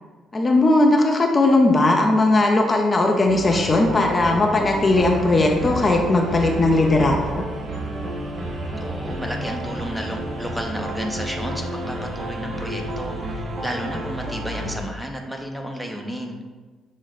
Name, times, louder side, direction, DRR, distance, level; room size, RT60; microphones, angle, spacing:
voice 1, 0.3-7.4, left 2 dB, 35° left, 1 dB, 0.6 m, -18 dB
sound 1, 3.3-14.8, right 1 dB, 45° right, 0.8 m, -30 dB
voice 2, 8.8-16.4, equal, 5° right, 2 dB, 0.8 m, -32 dB
6.1 x 2.1 x 4.0 m, 1.4 s
hypercardioid pair, 55°, 0 cm